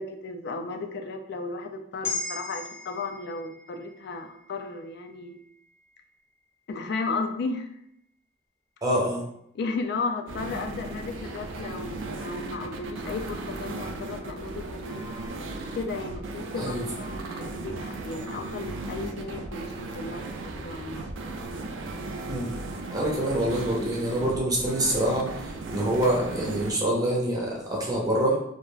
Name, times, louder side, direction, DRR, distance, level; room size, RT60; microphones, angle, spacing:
voice 1, 0.0-5.4 6.7-7.7 9.5-15.0 15.7-21.3, left 3 dB, 60° left, 5 dB, 0.3 m, -34 dB
sound 1, 2.0-6.5 6.9-7.1, left 3 dB, 15° left, 0.8 m, -39 dB
voice 2, 8.8-9.2 16.6-16.8 22.3-22.5 22.9-28.4, right 1 dB, 20° right, -3 dB, 0.5 m, -26 dB
sound 2, 10.3-26.7, right 2 dB, 85° right, 0.4 m, -36 dB
2.3 x 2.1 x 3.1 m, 0.75 s
head